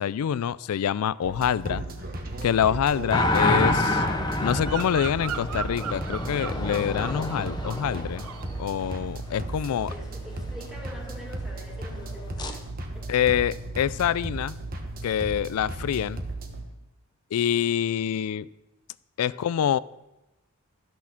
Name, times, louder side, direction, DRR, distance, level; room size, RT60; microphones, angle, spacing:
voice 1, 0.0-1.8 2.4-4.0 4.4-8.2 8.6-9.9 13.1-14.6 15.0-16.2 17.3-18.5 19.2-19.8, left 9 dB, 80° left, 19 dB, 0.3 m, -26 dB
sound 1, 1.2-16.6, right 2 dB, 40° right, 1.1 m, -35 dB
sound 2, 3.1-8.9 12.4-12.6, left 2 dB, 20° left, 0.7 m, -28 dB
Bird vocalization bird call bird song, 4.4-7.9 8.2-8.6, right 8 dB, 85° right, 0.4 m, -38 dB
voice 2, 9.3-12.6 12.9-13.1 19.3-19.7, equal, ahead, -2 dB, 2.2 m, -45 dB
13.5 x 6.3 x 5.8 m, 0.99 s
head